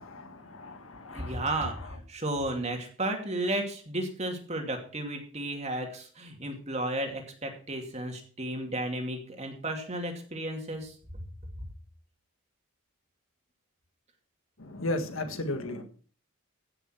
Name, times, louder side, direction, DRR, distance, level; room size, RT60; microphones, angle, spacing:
voice 1, 0.0-1.4 14.6-15.8, left 2 dB, 70° left, 7 dB, 1.8 m, -35 dB
voice 2, 1.1-10.9, right 1 dB, 30° right, 4 dB, 2.5 m, -33 dB
15.5 x 6.7 x 6.0 m, 0.42 s
head